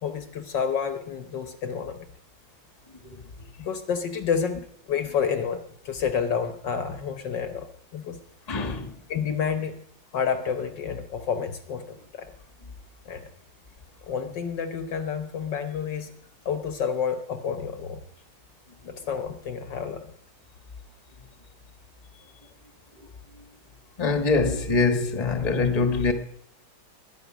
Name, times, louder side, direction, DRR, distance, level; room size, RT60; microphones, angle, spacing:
voice 1, 0.0-2.1 3.6-7.7 7.9-8.2 9.1-9.8 10.1-12.3 13.1-13.3 14.1-16.1 16.4-18.0 18.9-20.1, left 7 dB, 60° left, 1.6 m, -29 dB
voice 2, 8.5-8.9 24.0-26.1, left 4 dB, 20° left, 1.3 m, -24 dB
20.5 x 10.5 x 6.2 m
omnidirectional pair, 2.3 m